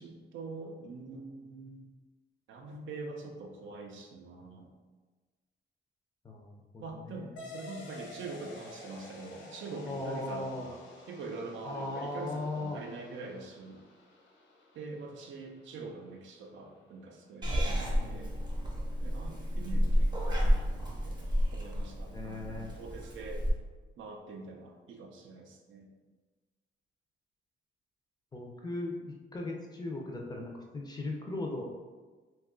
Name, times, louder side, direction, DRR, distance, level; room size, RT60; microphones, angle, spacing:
voice 1, 0.0-1.9 2.5-4.7 6.8-10.8 11.1-13.9 14.7-18.3 19.0-23.5 24.0-25.9, right 3 dB, 85° right, 2 dB, 0.5 m, -44 dB
voice 2, 6.2-7.4 9.8-10.7 11.6-12.8 17.5-18.3 22.1-22.7 28.3-31.7, left 2 dB, 20° left, 0 dB, 0.4 m, -38 dB
sound 1, 7.4-16.4, left 2 dB, 75° left, 0.6 m, -51 dB
Purr / Meow, 17.4-23.5, equal, 20° right, 0.6 m, -31 dB
2.7 x 2.3 x 3.6 m, 1.3 s
wide cardioid pair, 155°, 19 cm